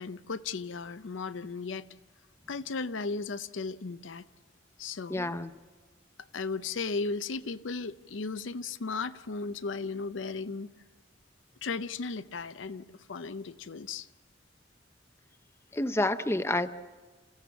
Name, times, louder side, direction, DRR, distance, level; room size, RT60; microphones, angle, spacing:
voice 1, 0.0-1.9 2.5-4.2 4.8-5.3 6.3-10.7 11.6-14.1, left 4 dB, 80° left, 0.6 m, -36 dB
voice 2, 5.1-5.5 15.7-16.7, left 2 dB, 15° left, 0.6 m, -28 dB
28.5 x 15.5 x 7.1 m
head